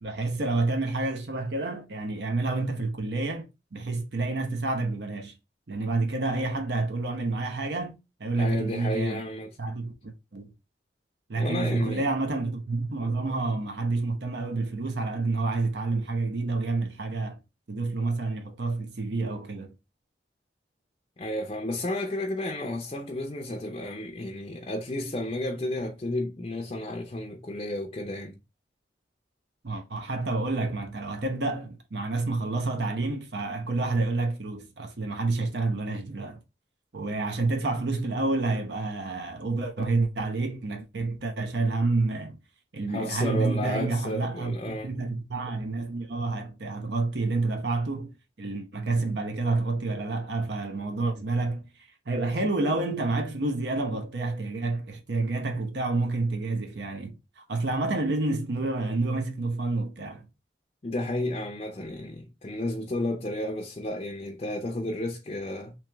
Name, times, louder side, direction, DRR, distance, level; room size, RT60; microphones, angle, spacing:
voice 1, 0.0-5.3 5.7-9.2 9.6-10.5 11.3-17.4 17.7-19.7 29.6-36.4 36.9-42.4 42.7-51.7 52.1-60.3, right 3 dB, 75° right, 0.8 m, -29 dB
voice 2, 8.4-9.6 11.4-12.0 21.2-28.3 42.9-44.9 60.8-65.8, left 1 dB, 30° left, 0.5 m, -32 dB
3.1 x 3.0 x 3.3 m
head